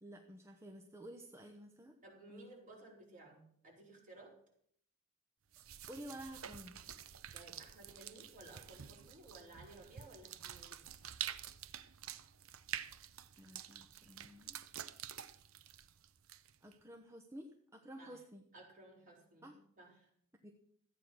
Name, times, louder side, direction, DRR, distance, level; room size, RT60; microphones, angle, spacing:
voice 1, 0.0-1.9 2.3-2.5 5.9-6.8 13.3-14.6 16.6-18.4 19.4-19.6 20.4-20.5, equal, 15° right, 3 dB, 1.0 m, -52 dB
voice 2, 2.0-4.3 7.3-10.8 18.0-18.2 18.5-20.1, right 2 dB, 40° right, -2 dB, 4.9 m, -57 dB
sound 1, 5.5-16.7, right 10 dB, 80° right, 0.7 m, -48 dB
14.0 x 8.9 x 6.3 m, 0.66 s
head